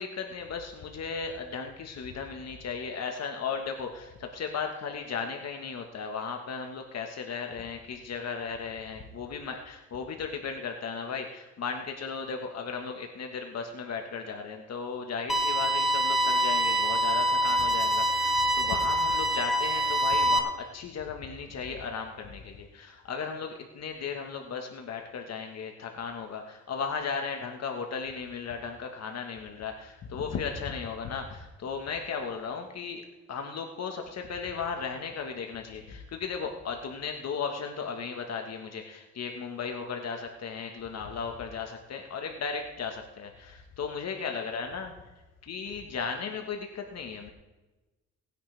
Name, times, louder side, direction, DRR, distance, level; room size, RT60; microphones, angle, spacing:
voice 1, 0.0-33.0 33.3-44.9 45.4-47.3, left 5 dB, 60° left, 4 dB, 1.4 m, -36 dB
sound 1, 15.3-20.4, equal, ahead, 1.5 m, -25 dB
19.0 x 10.0 x 3.4 m, 1.1 s
cardioid pair, 90°, 30 cm